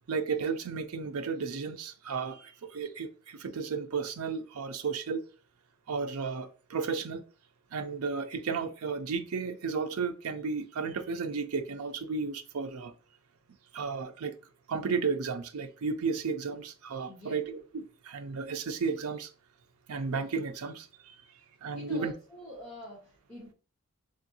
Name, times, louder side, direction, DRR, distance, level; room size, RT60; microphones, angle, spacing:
voice 1, 0.1-5.2 5.9-7.2 7.7-12.9 13.7-14.4 14.7-19.3 19.9-21.2 21.6-22.1, right 5 dB, 85° right, 0.5 m, -33 dB
voice 2, 21.7-23.5, equal, 5° left, 1.3 m, -46 dB
3.7 x 3.5 x 2.7 m
head